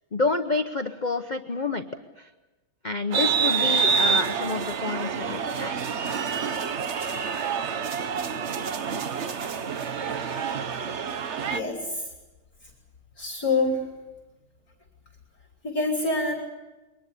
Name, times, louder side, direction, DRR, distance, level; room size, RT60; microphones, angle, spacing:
voice 1, 0.1-1.9 2.2-2.3 2.8-5.8, left 3 dB, 90° left, 7 dB, 0.4 m, -28 dB
sound 1, 3.1-11.6, right 6 dB, 50° right, 0.8 m, -27 dB
voice 2, 11.5-12.1 12.6-12.7 13.2-13.9 15.6-16.3, left 2 dB, 40° left, 0 dB, 3.7 m, -26 dB
23.0 x 19.0 x 8.5 m, 1.1 s
omnidirectional pair, 2.3 m